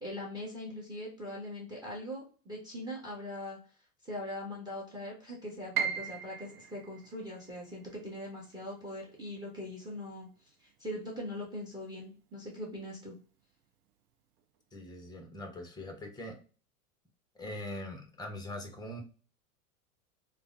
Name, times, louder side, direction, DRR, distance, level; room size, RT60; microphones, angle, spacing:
voice 1, 0.0-3.6 4.0-10.3 10.6-13.1, left 1 dB, 10° right, -2 dB, 1.0 m, -41 dB
Piano, 5.7-11.7 12.0-13.2 13.6-13.7 14.4-14.7, right 8 dB, 90° right, 0.5 m, -40 dB
voice 2, 14.7-16.4 17.3-19.0, left 1 dB, 10° left, 4 dB, 0.5 m, -42 dB
3.2 x 2.1 x 2.5 m, 0.38 s
hypercardioid pair, 110°, 44 cm